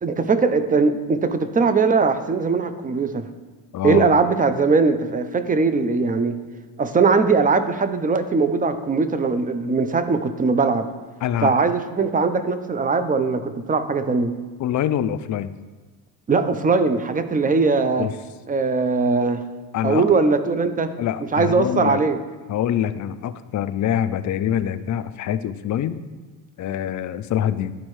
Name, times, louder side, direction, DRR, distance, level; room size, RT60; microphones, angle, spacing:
voice 1, 0.0-3.3 3.8-6.4 6.8-10.9 11.4-14.3 16.3-18.1 18.5-19.4 19.8-20.9 21.3-22.2, right 4 dB, 20° right, 10 dB, 0.5 m, -20 dB
voice 2, 3.7-4.1 11.2-11.6 14.6-15.5 18.0-18.1 19.7-20.2 21.0-22.0 22.5-26.0 26.6-27.7, left 10 dB, 45° left, 13 dB, 0.5 m, -25 dB
11.5 x 4.2 x 3.1 m, 1.4 s
cardioid pair, 90°, 42 cm